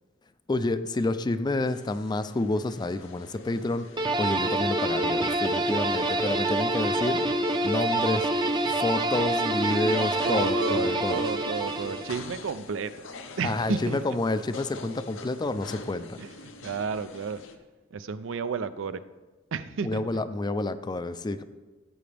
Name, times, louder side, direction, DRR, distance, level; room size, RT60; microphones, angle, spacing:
voice 1, 0.5-3.9 4.2-7.2 7.6-8.3 8.7-11.2 13.4-16.2 19.8-21.4, left 2 dB, 20° left, 12 dB, 0.4 m, -29 dB
sound 1, 1.7-17.6, left 4 dB, 85° left, 0.8 m, -46 dB
sound 2, 4.0-12.3, right 1 dB, 25° right, 0.6 m, -27 dB
voice 2, 10.2-13.1 13.4-14.0 16.2-17.4 17.9-19.0 19.5-20.0, right 5 dB, 75° right, 13 dB, 0.5 m, -32 dB
15.5 x 7.9 x 3.4 m, 1.2 s
head